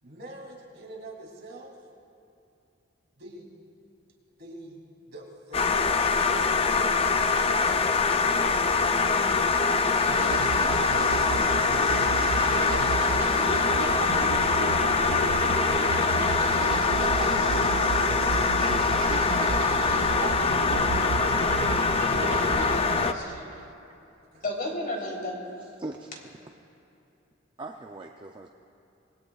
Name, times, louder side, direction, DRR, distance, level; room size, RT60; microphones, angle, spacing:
voice 1, 0.0-1.8 3.2-3.5 4.4-7.1 15.1-15.6 16.4-19.9 24.3-24.4, right 1 dB, 55° right, -2 dB, 3.1 m, -46 dB
sound 1, 5.5-23.1, left 4 dB, 30° left, 0.5 m, -24 dB
sound 2, 10.0-23.6, right 7 dB, 75° right, 0.3 m, -33 dB
voice 2, 22.3-23.5 24.4-25.4, left 1 dB, 45° left, -2 dB, 3.5 m, -34 dB
voice 3, 25.8-26.5 27.6-28.5, right 2 dB, 25° right, 2 dB, 0.5 m, -41 dB
26.5 x 20.0 x 2.4 m, 2.7 s
head